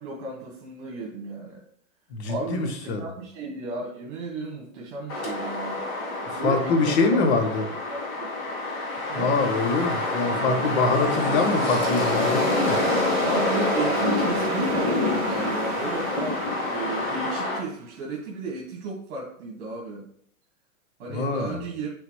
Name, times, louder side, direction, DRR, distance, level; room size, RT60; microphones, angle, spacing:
voice 1, 0.0-1.6 2.3-6.1 6.4-7.2 7.6-8.3 9.1-9.3 13.2-20.0 21.0-21.9, right 3 dB, 55° right, -1 dB, 1.6 m, -34 dB
voice 2, 2.1-3.0 6.3-7.6 9.1-12.8 21.1-21.6, left 3 dB, 50° left, 6 dB, 1.3 m, -24 dB
sound 1, 5.1-17.6, left 2 dB, 75° left, 2.3 m, -27 dB
sound 2, 9.5-18.0, right 3 dB, 25° right, 0.5 m, -36 dB
8.0 x 4.0 x 3.2 m, 0.63 s
hypercardioid pair, 150°, 43 cm